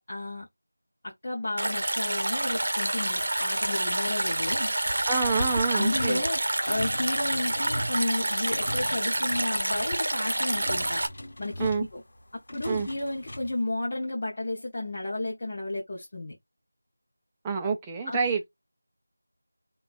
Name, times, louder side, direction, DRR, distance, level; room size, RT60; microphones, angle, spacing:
voice 1, 0.1-0.5 1.0-4.7 5.7-11.0 11.4-12.0 12.5-16.4 18.1-18.2, left 2 dB, 30° left, 0.8 m, -32 dB
Stream, 1.6-11.1, right 1 dB, 55° right, 0.7 m, -28 dB
sound 1, 3.2-13.6, left 1 dB, 50° left, 1.1 m, -40 dB
voice 2, 5.1-6.3 11.6-11.9 12.7-12.9 17.4-18.5, right 5 dB, 10° right, 0.4 m, -27 dB
3.2 x 2.3 x 3.9 m
figure-of-eight pair, 175°, 0 cm